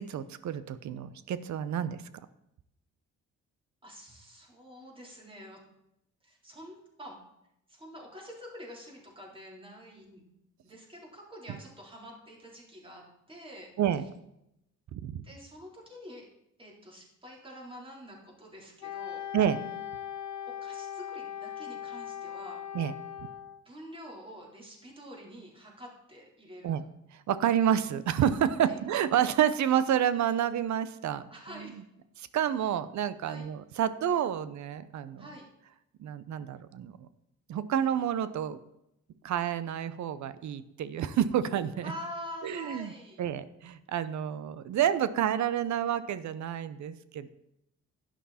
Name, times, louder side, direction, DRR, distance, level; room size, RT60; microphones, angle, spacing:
voice 1, 0.0-2.0 13.8-14.0 14.9-15.2 19.3-19.6 22.7-22.9 26.6-26.8 27.1-31.2 32.2-35.2 36.0-37.1 37.5-38.6 39.2-41.9 42.4-42.9 43.2-47.3, right 9 dB, 70° right, 14 dB, 0.8 m, -29 dB
voice 2, 3.8-5.6 6.2-7.2 7.7-10.2 10.6-13.7 15.2-16.3 16.6-19.2 20.1-20.2 20.5-22.6 23.6-26.7 28.6-28.8 31.3-31.8 33.2-33.5 35.2-35.5 41.8-43.2, equal, 15° right, -2 dB, 4.0 m, -46 dB
Wind instrument woodwind instrument, 18.8-23.6, left 10 dB, 70° left, 1.7 m, -39 dB
11.0 x 10.0 x 4.3 m, 0.82 s
cardioid pair, 90°, 30 cm